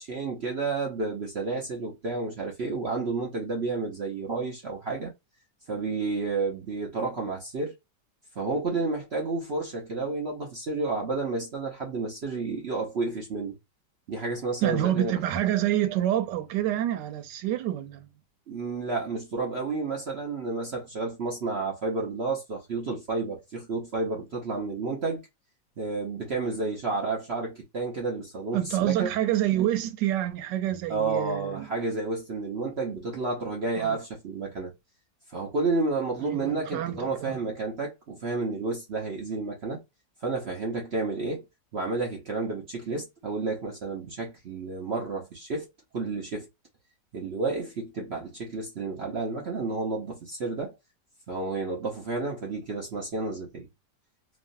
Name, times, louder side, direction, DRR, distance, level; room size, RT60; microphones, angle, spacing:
voice 1, 0.0-5.1 5.7-7.7 8.4-13.5 14.1-15.2 18.5-25.2 25.8-29.1 30.9-34.7 35.3-39.8 40.2-41.4 41.7-45.7 45.9-46.5 47.1-50.7 51.3-53.7, right 3 dB, 50° right, 0.8 m, -31 dB
voice 2, 14.6-18.1 28.5-31.7 33.8-34.0 36.2-37.4, right 12 dB, 90° right, 1.2 m, -27 dB
3.1 x 2.4 x 2.5 m
omnidirectional pair, 1.8 m